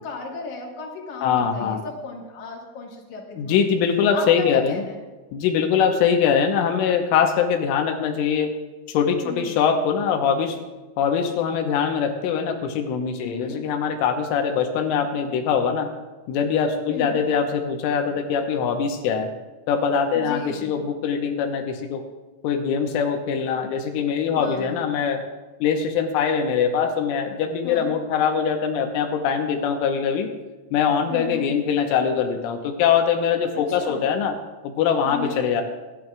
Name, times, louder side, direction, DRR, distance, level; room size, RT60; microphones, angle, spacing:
voice 1, 0.0-3.6 4.1-5.0 9.2-9.6 13.2-13.7 16.9-17.2 20.1-20.8 24.3-24.8 27.6-28.0 31.1-31.5 33.5-34.1 35.0-35.4, left 3 dB, 60° left, -1 dB, 2.1 m, -35 dB
voice 2, 1.2-1.8 3.4-4.8 5.3-8.5 8.9-10.6 11.0-15.9 16.3-19.3 19.7-22.0 22.4-25.3 25.6-30.3 30.7-34.3 34.6-35.6, left 7 dB, 80° left, 4 dB, 3.3 m, -22 dB
25.5 x 11.0 x 2.4 m, 1.2 s
omnidirectional pair, 6.0 m